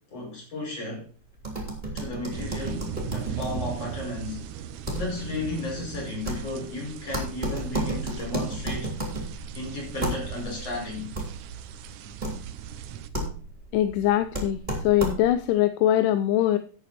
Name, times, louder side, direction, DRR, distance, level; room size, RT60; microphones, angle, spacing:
voice 1, 0.1-1.1 1.9-4.4 5.0-8.9 9.5-11.1, left 2 dB, 50° left, 6.5 m, -34 dB
sound 1, 1.4-15.5, right 1 dB, 15° right, 2.8 m, -34 dB
sound 2, 2.3-13.1, right 10 dB, 75° right, 2.0 m, -39 dB
voice 2, 13.7-16.6, left 12 dB, 85° left, 2.2 m, -22 dB
11.5 x 8.1 x 4.2 m
omnidirectional pair, 3.7 m